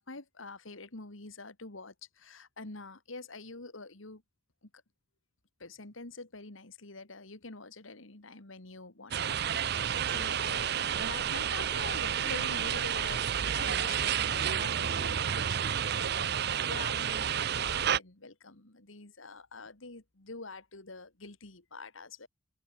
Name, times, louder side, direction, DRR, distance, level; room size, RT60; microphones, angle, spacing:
voice 1, 0.0-4.2 5.6-9.4 10.1-22.3, left 3 dB, 80° left, 2.5 m, -46 dB
sound 1, 9.1-18.0, right 9 dB, 55° right, 0.6 m, -30 dB
head